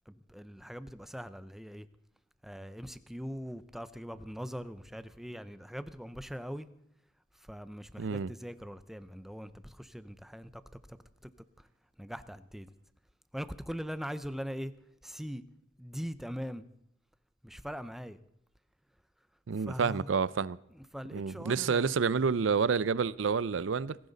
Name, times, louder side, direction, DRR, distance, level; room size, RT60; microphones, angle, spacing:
voice 1, 0.1-1.9 2.4-6.7 7.3-10.6 10.9-11.0 11.2-11.3 11.6-11.7 12.0-12.7 13.3-14.7 15.0-15.4 15.8-16.6 17.4-18.2 19.6-20.1 20.7-22.0, equal, ahead, 0.6 m, -41 dB
voice 2, 8.0-8.3 19.5-20.6 21.1-24.0, right 5 dB, 75° right, 0.5 m, -29 dB
18.5 x 16.0 x 4.0 m
head